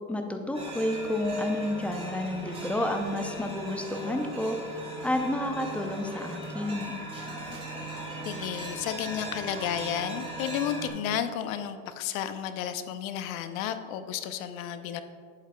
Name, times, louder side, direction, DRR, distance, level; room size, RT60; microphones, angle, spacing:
voice 1, 0.1-7.0, left 1 dB, 5° left, 5 dB, 0.5 m, -30 dB
sound 1, 0.5-10.9, right 1 dB, 10° right, 2.1 m, -38 dB
voice 2, 8.2-15.0, left 9 dB, 65° left, 10 dB, 0.8 m, -32 dB
11.5 x 8.1 x 2.2 m, 2.2 s
hypercardioid pair, 105°, 44 cm